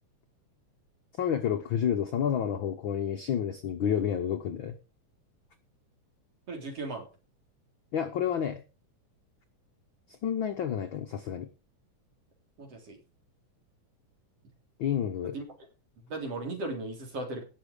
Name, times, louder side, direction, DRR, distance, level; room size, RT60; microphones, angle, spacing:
voice 1, 1.2-4.7 7.9-8.6 10.1-11.5 14.8-15.4, left 8 dB, 80° left, 6 dB, 1.1 m, -30 dB
voice 2, 6.5-7.1 12.6-13.0 15.3-15.4 16.0-17.4, right 2 dB, 50° right, 3 dB, 4.4 m, -36 dB
18.5 x 6.7 x 5.1 m, 0.32 s
omnidirectional pair, 3.7 m